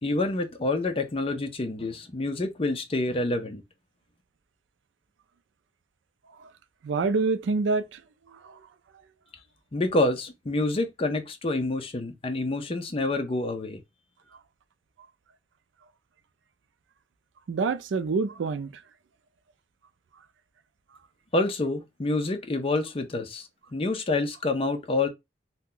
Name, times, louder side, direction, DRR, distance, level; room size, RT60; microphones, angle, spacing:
voice 1, 0.0-3.6 9.7-13.8 21.3-25.1, left 2 dB, 30° left, 0.5 m, -27 dB
voice 2, 6.8-8.0 17.5-18.7, right 4 dB, 85° right, 0.4 m, -26 dB
2.7 x 2.2 x 3.7 m
head